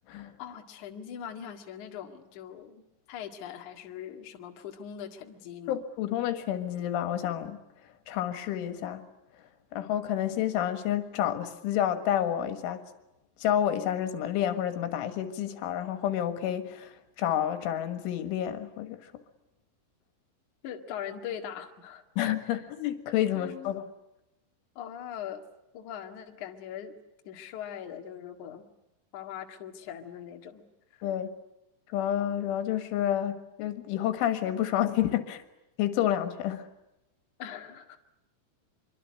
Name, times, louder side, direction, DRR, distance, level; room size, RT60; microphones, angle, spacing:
voice 1, 0.4-5.8 20.6-22.0 22.4-22.5 23.3-23.7 24.8-25.4 25.7-27.0 27.2-28.6 29.1-30.6 37.4-38.0, left 9 dB, 50° left, 2.7 m, -41 dB
voice 2, 5.7-7.6 8.1-9.1 9.7-12.8 13.4-19.0 22.2-23.8 31.0-31.3 31.9-35.4 35.8-36.7, left 11 dB, 85° left, 4.0 m, -29 dB
25.5 x 24.0 x 9.7 m
omnidirectional pair, 5.4 m